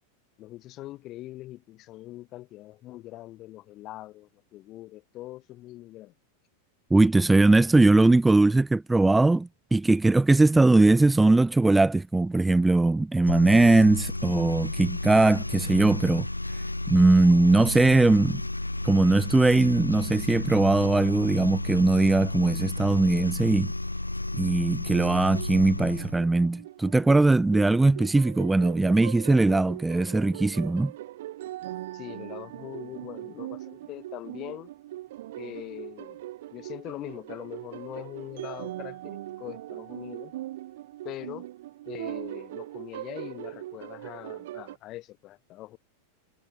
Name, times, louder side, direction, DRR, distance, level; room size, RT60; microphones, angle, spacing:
voice 1, 0.4-6.1 31.9-34.7 35.4-36.2 36.5-40.3 41.0-41.5 41.9-45.8, left 16 dB, 35° left, 4.1 m, -42 dB
voice 2, 6.9-16.3 16.9-18.4 18.8-23.7 24.4-30.9, right 2 dB, 5° right, 0.5 m, -20 dB
sound 1, 13.2-26.2, left 2 dB, 85° left, 0.4 m, -32 dB
sound 2, 24.9-44.8, right 15 dB, 55° right, 2.2 m, -40 dB
figure-of-eight pair, 90°, 0 cm